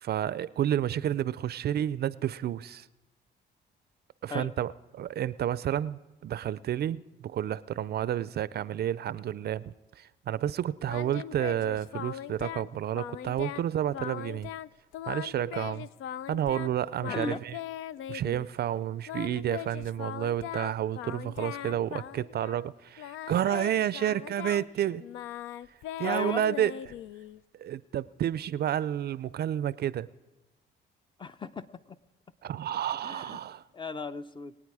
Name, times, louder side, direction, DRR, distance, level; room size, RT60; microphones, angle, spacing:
voice 1, 0.0-2.9 4.2-14.5 15.1-15.9 16.3-17.5 18.1-25.0 26.0-26.7 27.6-30.1 32.4-33.6, right 11 dB, 55° right, 18 dB, 0.4 m, -30 dB
Singing, 10.9-12.7 12.9-13.7 13.9-14.7 14.9-16.7 17.0-18.5 19.1-22.7 23.0-27.4, left 12 dB, 85° left, 0.4 m, -39 dB
voice 2, 17.1-17.4 26.0-26.4 31.2-32.0 33.0-33.4 33.7-34.6, left 3 dB, 25° left, 12 dB, 0.5 m, -36 dB
22.5 x 9.0 x 4.8 m, 1.1 s
cardioid pair, 90°, 20 cm